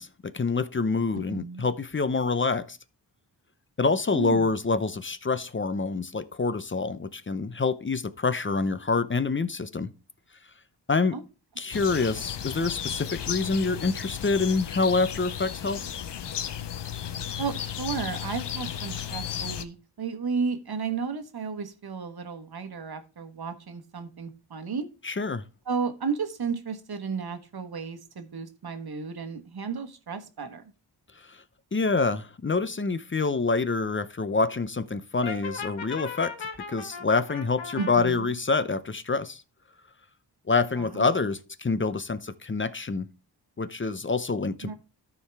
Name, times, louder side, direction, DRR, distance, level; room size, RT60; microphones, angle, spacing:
voice 1, 0.0-2.8 3.8-9.9 10.9-11.2 11.6-15.8 25.0-25.4 31.7-36.3 36.7-39.4 40.5-43.1 43.6-44.7, left 4 dB, 25° left, 0.7 m, -26 dB
voice 2, 1.1-1.7 4.1-4.5 11.1-11.2 17.4-24.9 25.7-30.6 37.8-38.4 40.7-41.1 44.6-44.7, right 5 dB, 55° right, 1.3 m, -33 dB
sound 1, 11.7-19.6, left 9 dB, 65° left, 0.8 m, -34 dB
Brass instrument, 35.2-37.9, left 5 dB, 80° left, 1.2 m, -37 dB
13.0 x 4.7 x 3.4 m
cardioid pair, 55°, 45 cm